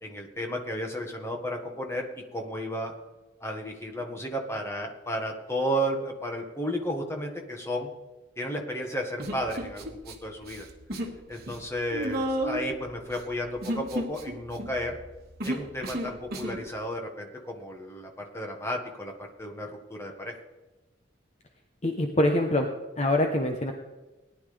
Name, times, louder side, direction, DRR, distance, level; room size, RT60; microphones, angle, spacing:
voice 1, 0.0-2.1 2.3-2.9 3.4-7.9 8.4-10.7 11.3-15.0 15.4-20.3, equal, 15° left, 1 dB, 1.7 m, -33 dB
Human voice, 9.2-10.1 10.4-11.2 11.4-16.6, right 1 dB, 50° right, 1.8 m, -33 dB
voice 2, 21.8-22.7 23.0-23.7, left 1 dB, 35° left, 3 dB, 0.9 m, -24 dB
18.5 x 11.0 x 3.4 m, 1.1 s
head